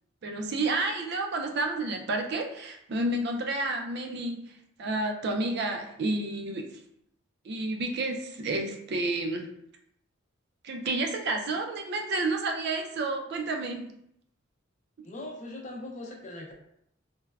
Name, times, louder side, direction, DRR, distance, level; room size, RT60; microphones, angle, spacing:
voice 1, 0.2-4.4 4.8-6.7 7.4-9.5 10.6-13.9 15.0-15.1, right 2 dB, 55° right, 3 dB, 0.4 m, -30 dB
voice 2, 15.0-16.6, left 1 dB, 35° left, 0 dB, 0.5 m, -40 dB
3.2 x 2.1 x 2.3 m, 0.74 s
head